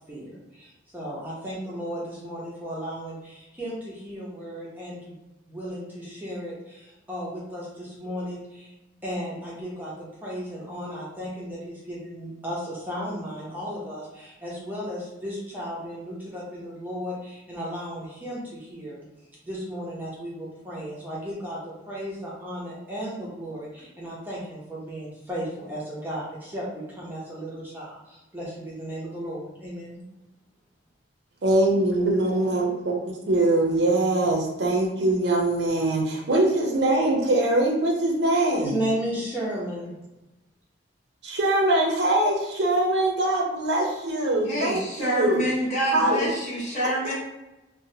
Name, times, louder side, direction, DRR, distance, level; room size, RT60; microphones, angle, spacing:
voice 1, 0.1-5.2 5.5-8.7 9.0-19.0 19.4-30.0 38.6-40.0 44.4-44.5, equal, 10° right, -7 dB, 0.6 m, -35 dB
voice 2, 31.4-38.8 41.2-45.4 45.9-46.4 46.8-46.9, right 1 dB, 65° right, 0 dB, 0.5 m, -23 dB
voice 3, 44.4-47.1, right 1 dB, 40° left, -7 dB, 1.1 m, -27 dB
2.8 x 2.1 x 2.6 m, 0.99 s
head